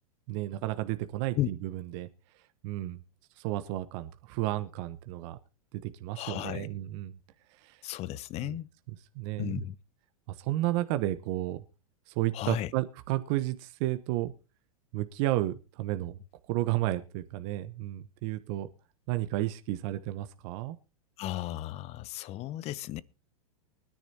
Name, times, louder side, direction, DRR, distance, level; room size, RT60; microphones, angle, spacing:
voice 1, 0.3-2.1 2.6-3.0 3.4-5.4 5.8-7.1 7.6-7.8 8.4-8.6 8.9-9.6 10.3-11.6 12.1-14.3 14.9-16.2 16.5-18.7 19.1-20.8, right 16 dB, 50° right, 1.0 m, -32 dB
voice 2, 6.2-6.7 7.8-8.7 9.4-9.8 12.3-12.7 21.2-23.0, left 14 dB, 35° left, 0.7 m, -34 dB
23.5 x 10.5 x 2.8 m
hypercardioid pair, 105°, 19 cm